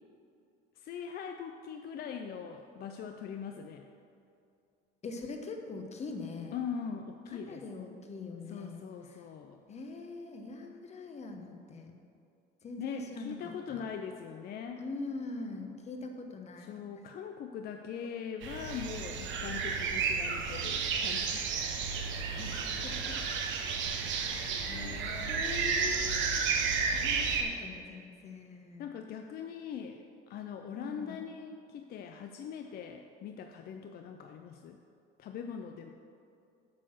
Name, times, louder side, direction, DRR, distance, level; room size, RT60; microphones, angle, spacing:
voice 1, 0.8-3.9 6.5-7.6 8.5-9.6 12.8-14.8 16.6-21.7 24.5-25.4 26.7-26.8 28.8-34.8 35.2-35.9, left 7 dB, 50° left, 5 dB, 0.5 m, -41 dB
voice 2, 5.0-6.6 7.3-8.8 9.1-9.2 9.7-12.0 12.6-13.4 13.7-13.9 14.8-16.8 22.3-23.2 24.1-24.9 25.3-28.9 30.7-31.2, left 3 dB, 35° left, 4 dB, 1.0 m, -43 dB
sound 1, 18.4-27.4, right 5 dB, 65° right, 1.0 m, -32 dB
8.4 x 4.5 x 6.1 m, 2.5 s
cardioid pair, 115°, 21 cm